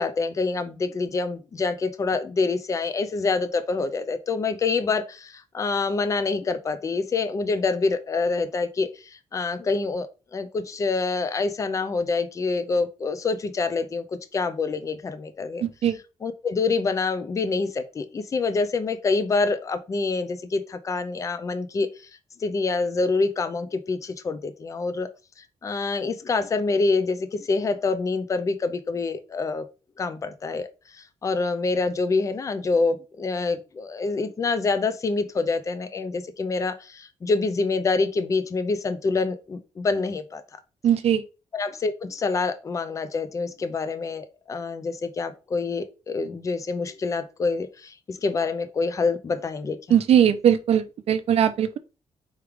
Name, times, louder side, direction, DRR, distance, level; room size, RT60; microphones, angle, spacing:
voice 1, 0.0-14.0 14.3-15.6 16.2-21.9 22.4-25.1 25.6-29.6 30.0-30.7 30.9-40.4 41.5-49.8, left 4 dB, 25° left, 0.4 m, -26 dB
voice 2, 15.6-15.9 40.8-41.2 49.9-51.8, right 9 dB, 55° right, 0.5 m, -20 dB
4.7 x 3.1 x 3.4 m
wide cardioid pair, 175°, 12 cm